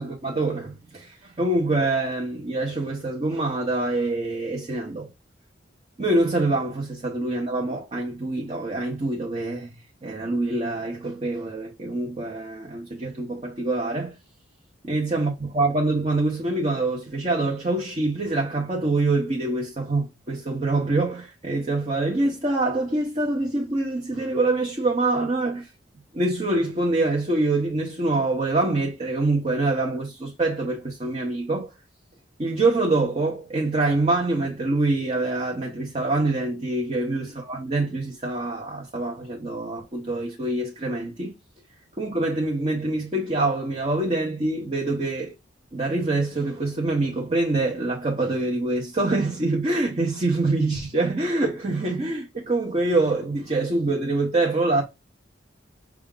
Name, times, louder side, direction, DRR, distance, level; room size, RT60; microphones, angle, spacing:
voice 1, 0.0-5.1 6.0-9.7 10.0-14.1 14.9-25.7 26.1-31.7 32.4-41.3 42.0-45.3 45.7-54.8, right 2 dB, 35° right, 0.9 m, -25 dB
5.9 x 2.4 x 3.7 m
head